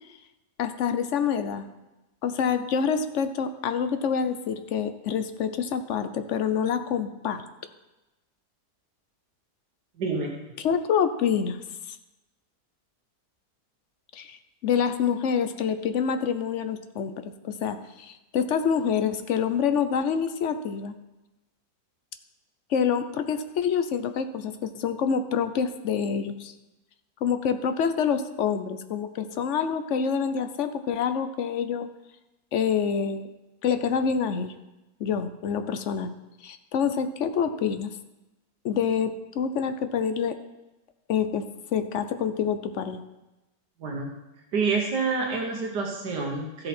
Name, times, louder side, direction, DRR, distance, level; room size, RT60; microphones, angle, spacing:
voice 1, 0.6-1.7 2.2-7.4 10.6-11.6 11.9-12.0 14.1-14.4 14.6-20.9 22.7-26.5 27.2-31.9 32.5-33.3 33.6-34.5 35.0-36.1 36.4-37.9 38.6-40.4 41.1-41.5 41.7-43.0, left 7 dB, 60° left, 10 dB, 0.8 m, -27 dB
voice 2, 10.0-10.3 43.8-44.2 44.5-46.7, right 4 dB, 80° right, 0 dB, 1.8 m, -28 dB
13.5 x 7.8 x 4.3 m, 1.0 s
omnidirectional pair, 1.8 m